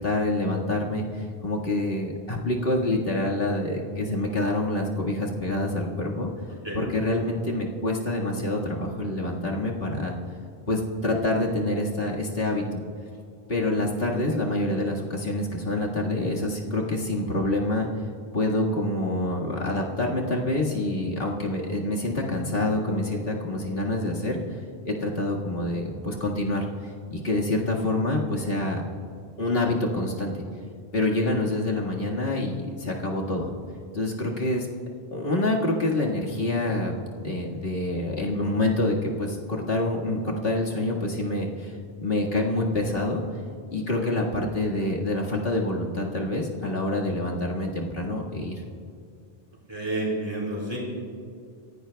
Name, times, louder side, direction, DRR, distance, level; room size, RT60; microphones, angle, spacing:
voice 1, 0.0-6.3 6.7-10.2 10.7-12.8 13.5-17.9 18.3-24.4 24.9-26.7 27.1-28.8 29.4-30.4 30.9-33.5 33.9-34.7 35.1-36.9 37.2-41.7 42.0-43.2 43.7-48.6, left 2 dB, 65° left, -2 dB, 2.1 m, -26 dB
voice 2, 49.7-50.8, right 2 dB, 25° right, -6 dB, 4.5 m, -29 dB
27.5 x 16.0 x 2.3 m, 2.4 s
omnidirectional pair, 1.1 m